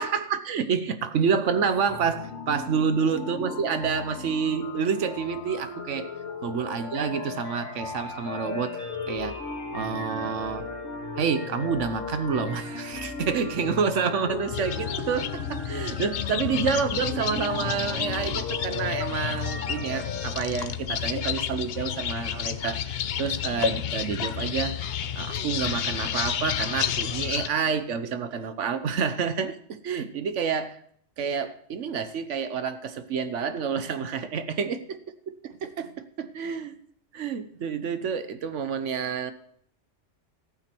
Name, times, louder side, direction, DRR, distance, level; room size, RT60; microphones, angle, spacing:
voice 1, 0.0-6.1 6.4-8.8 9.1-9.4 9.7-10.7 11.1-24.8 25.2-30.8 31.2-35.0 35.4-36.8 37.1-39.3, right 6 dB, 75° right, 11 dB, 1.2 m, -28 dB
sound 1, 1.5-20.3, left 4 dB, 90° left, 2.0 m, -36 dB
sound 2, 14.5-27.5, left 9 dB, 60° left, 0.8 m, -30 dB
14.0 x 9.0 x 4.5 m, 0.63 s
omnidirectional pair, 1.3 m